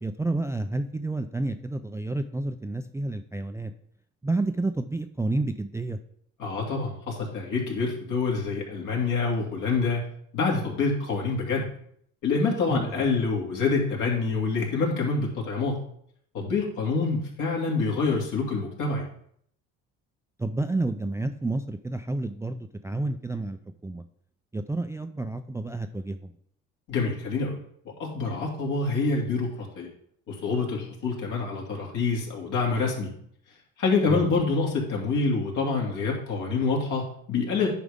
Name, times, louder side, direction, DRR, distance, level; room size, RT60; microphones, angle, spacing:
voice 1, 0.0-3.7 4.2-6.0 12.7-13.0 20.4-24.0 24.5-26.3 34.1-34.3, right 2 dB, 10° right, 8 dB, 0.4 m, -30 dB
voice 2, 6.4-10.0 10.3-11.7 12.2-15.8 16.3-19.0 26.9-27.6 28.0-29.9 30.3-33.1 33.8-37.7, left 4 dB, 65° left, -1 dB, 2.5 m, -26 dB
9.8 x 5.1 x 3.6 m, 0.65 s
supercardioid pair, 85°, 33 cm